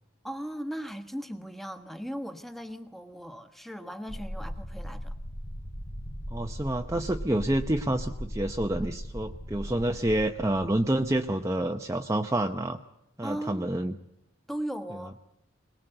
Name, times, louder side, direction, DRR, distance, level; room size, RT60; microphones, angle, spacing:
voice 1, 0.2-5.2 13.2-13.7 14.5-15.1, equal, ahead, 8 dB, 1.3 m, -37 dB
sound 1, 4.1-11.7, equal, 80° left, 3.1 m, -38 dB
voice 2, 6.3-12.8 13.2-14.0, right 1 dB, 15° right, 4 dB, 0.8 m, -28 dB
22.5 x 20.0 x 7.9 m, 0.83 s
head